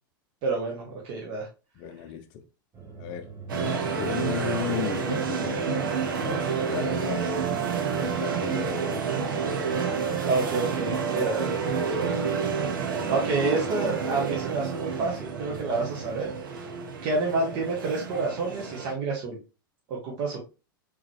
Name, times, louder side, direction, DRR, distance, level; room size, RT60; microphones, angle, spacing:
voice 1, 0.4-1.5 10.3-11.5 12.0-12.6 13.0-16.3 17.0-19.4 19.9-20.4, right 3 dB, 45° right, 1.2 m, -29 dB
voice 2, 1.8-2.2 3.0-6.0 6.2-7.3 8.0-9.1, left 10 dB, 45° left, 0.6 m, -35 dB
sound 1, 2.7-16.1, right 4 dB, 20° right, 1.6 m, -44 dB
sound 2, 3.5-18.9, right 6 dB, 70° right, 0.9 m, -29 dB
3.7 x 3.1 x 3.2 m
figure-of-eight pair, 95°, 12 cm